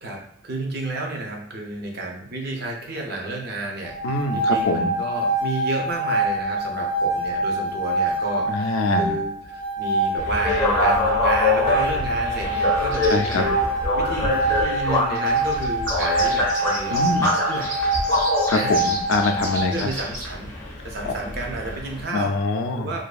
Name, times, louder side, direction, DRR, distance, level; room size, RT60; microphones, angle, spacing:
voice 1, 0.0-4.0 4.3-13.6 13.9-17.7 18.5-18.8 19.5-20.5 20.8-22.3 22.8-23.0, right 2 dB, 50° right, 0 dB, 0.6 m, -31 dB
sound 1, 3.8-19.7, right 2 dB, 15° right, 0.8 m, -25 dB
voice 2, 4.0-4.9 8.5-9.1 13.1-13.4 16.9-17.3 18.5-19.7 21.0-21.1 22.1-22.9, left 3 dB, 85° left, 6 dB, 0.3 m, -24 dB
sound 2, 10.2-22.0, left 2 dB, 15° left, 0.4 m, -25 dB
sound 3, 12.9-13.4 15.2-20.3, right 1 dB, 70° right, 1.3 m, -34 dB
2.6 x 2.3 x 2.3 m, 0.62 s
head